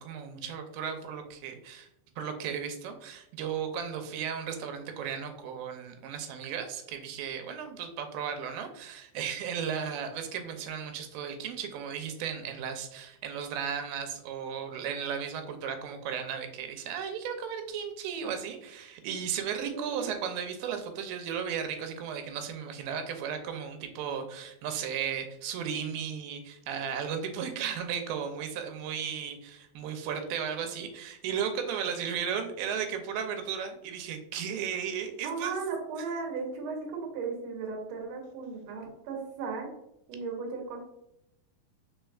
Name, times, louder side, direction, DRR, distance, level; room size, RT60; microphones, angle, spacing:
voice 1, 0.0-1.9 2.2-35.5, right 7 dB, 90° right, 6 dB, 2.4 m, -35 dB
voice 2, 19.6-20.1 35.2-39.7 40.1-40.8, right 4 dB, 65° right, 1 dB, 1.8 m, -36 dB
4.7 x 4.3 x 2.3 m, 0.82 s
omnidirectional pair, 4.1 m